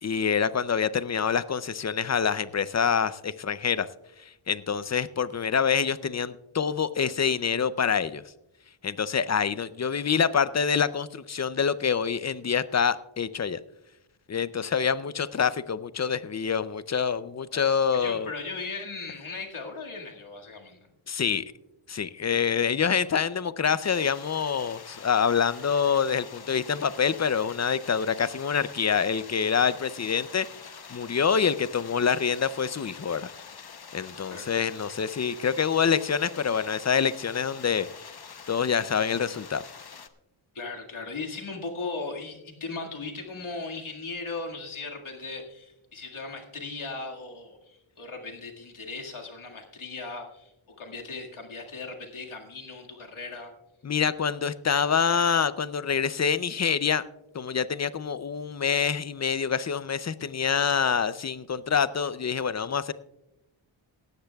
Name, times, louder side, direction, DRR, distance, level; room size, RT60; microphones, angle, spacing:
voice 1, 0.0-3.9 4.5-8.2 8.8-13.6 14.3-18.3 21.1-21.4 21.9-33.3 33.9-37.9 38.5-39.6 53.8-57.0 57.3-62.9, left 6 dB, 35° left, 15 dB, 0.5 m, -26 dB
voice 2, 17.9-20.9 34.3-34.5 40.5-50.5 50.8-53.5, left 3 dB, 80° left, 1 dB, 2.0 m, -37 dB
sound 1, 23.8-40.1, left 6 dB, 50° left, 0.8 m, -46 dB
17.5 x 13.5 x 2.3 m, 0.88 s
wide cardioid pair, 95°, 48 cm